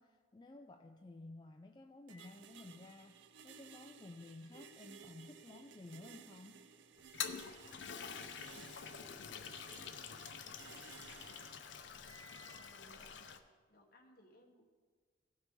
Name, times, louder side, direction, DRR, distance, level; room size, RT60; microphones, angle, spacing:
voice 1, 0.0-6.6, left 2 dB, 25° left, 4 dB, 0.4 m, -54 dB
Microwave oven, 2.1-12.9, right 1 dB, 35° right, 3.0 m, -68 dB
sound 1, 2.1-11.6, right 7 dB, 85° right, 0.4 m, -58 dB
Toilet flush, 7.0-13.4, left 7 dB, 85° left, 0.6 m, -47 dB
voice 2, 8.0-8.7 9.9-11.3 12.3-13.3 13.7-14.6, equal, 55° left, 1 dB, 1.3 m, -66 dB
16.0 x 6.3 x 3.7 m, 1.5 s
head